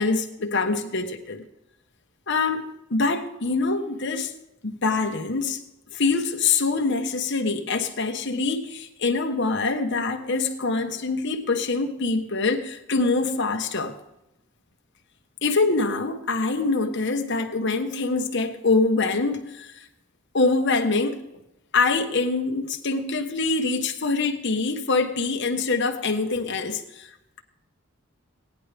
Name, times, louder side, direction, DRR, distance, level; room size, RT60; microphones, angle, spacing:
voice 1, 0.0-1.4 2.3-4.3 4.6-5.6 5.9-13.9 15.4-19.9 20.3-21.3 21.7-27.1, left 3 dB, 60° left, 1.3 m, -24 dB
17.0 x 10.5 x 3.4 m
head